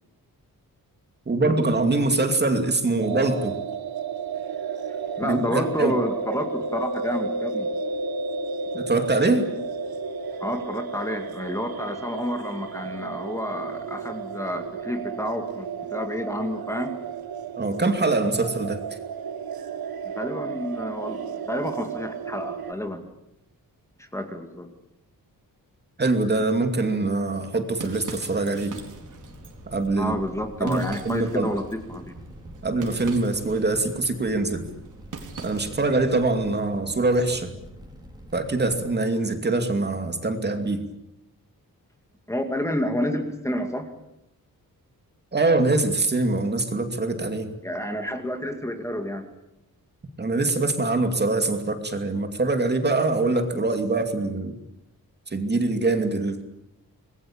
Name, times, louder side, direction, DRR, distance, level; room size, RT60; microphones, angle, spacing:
voice 1, 1.3-3.5 5.2-5.9 8.7-9.5 17.6-18.8 26.0-28.8 29.7-30.1 30.6-31.5 32.6-34.6 35.4-37.5 38.3-40.9 45.3-47.5 50.2-54.6 55.3-56.4, right 2 dB, 30° right, 6 dB, 2.6 m, -23 dB
sound 1, 3.0-22.7, right 5 dB, 85° right, 1.5 m, -33 dB
voice 2, 5.2-7.7 10.4-16.9 20.2-23.0 24.0-24.7 30.0-32.1 42.3-43.9 47.6-49.3, left 1 dB, 10° left, 5 dB, 2.3 m, -30 dB
sound 2, 27.3-36.0, right 5 dB, 55° right, 4.3 m, -43 dB
Fire, 28.5-38.8, equal, 10° right, 4.4 m, -45 dB
26.5 x 21.0 x 8.8 m, 0.88 s
wide cardioid pair, 170°, 36 cm